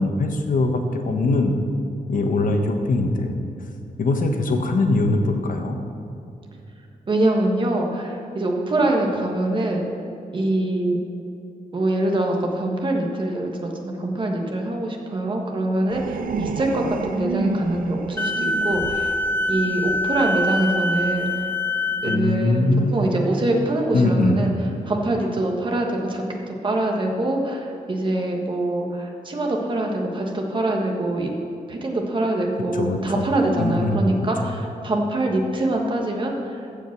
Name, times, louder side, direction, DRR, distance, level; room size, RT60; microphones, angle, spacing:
voice 1, 0.0-1.5 2.1-3.4 4.0-5.8 22.0-22.9 23.9-24.4 32.7-33.2 33.6-34.0, left 2 dB, 60° left, 4 dB, 1.2 m, -21 dB
voice 2, 7.1-9.8 10.3-11.0 11.7-19.2 19.5-21.5 22.0-24.5 24.8-31.3 31.7-36.6, right 1 dB, 35° right, 1 dB, 1.5 m, -24 dB
sound 1, 15.9-21.1 21.7-22.0, right 4 dB, 65° right, 0.6 m, -32 dB
Wind instrument woodwind instrument, 18.2-22.2, left 2 dB, 15° left, 0.3 m, -24 dB
14.5 x 5.2 x 7.4 m, 2.7 s
wide cardioid pair, 170°, 15 cm